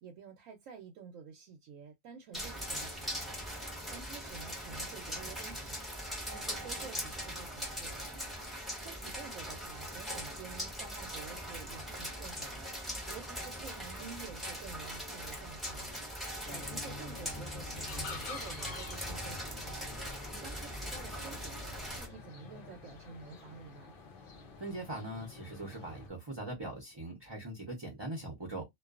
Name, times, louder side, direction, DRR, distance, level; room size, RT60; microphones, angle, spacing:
voice 1, 0.0-3.3 3.6-5.9 6.3-8.3 8.8-12.7 13.1-15.9 16.5-19.8 20.3-23.9, right 6 dB, 85° right, 1.0 m, -50 dB
sound 1, 2.3-22.1, equal, ahead, 0.8 m, -41 dB
sound 2, 16.5-26.1, left 4 dB, 55° left, 0.6 m, -47 dB
voice 2, 24.6-28.6, right 1 dB, 25° right, 0.6 m, -41 dB
2.4 x 2.3 x 2.3 m
omnidirectional pair, 1.3 m